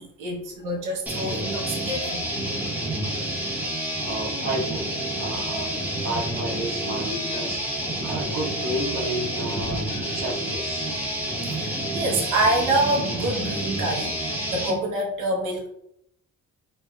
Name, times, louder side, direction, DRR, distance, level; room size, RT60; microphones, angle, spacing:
voice 1, 0.0-2.2 9.9-10.0 11.5-15.7, right 2 dB, 85° right, 0 dB, 0.9 m, -26 dB
sound 1, 1.1-14.8, right 1 dB, 5° right, 1.0 m, -29 dB
voice 2, 4.0-7.6 8.0-9.8 10.1-10.9, right 1 dB, 60° right, 0 dB, 1.0 m, -31 dB
3.2 x 3.0 x 2.2 m, 0.73 s
cardioid pair, 90°, 30 cm